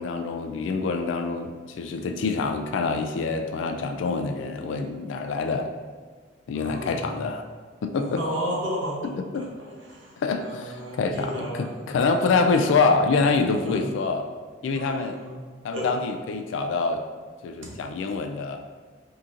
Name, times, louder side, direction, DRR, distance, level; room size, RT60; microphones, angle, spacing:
voice 1, 0.0-5.7 6.5-7.4 7.8-8.2 9.0-9.5 10.2-14.3 14.6-15.2 15.6-17.1 17.4-18.6, left 4 dB, 80° left, 6 dB, 0.3 m, -26 dB
voice 2, 6.5-7.3 8.2-12.4 13.6-13.9 14.7-15.4 15.7-15.9 17.6-17.8, equal, 85° right, -3 dB, 0.8 m, -34 dB
3.7 x 2.8 x 2.4 m, 1.5 s
head